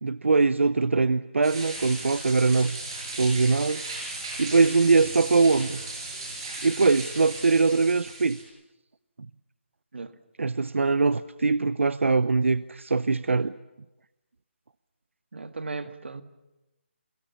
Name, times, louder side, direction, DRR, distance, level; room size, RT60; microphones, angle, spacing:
voice 1, 0.0-2.8 3.2-3.8 4.4-5.8 6.6-8.4 10.4-13.5, right 4 dB, 85° right, 0.8 m, -22 dB
sound 1, 1.4-8.4, right 2 dB, 25° right, 7.2 m, -36 dB
voice 2, 15.3-16.2, right 3 dB, 65° right, 1.7 m, -36 dB
30.0 x 22.5 x 7.2 m
hypercardioid pair, 180°, 7 cm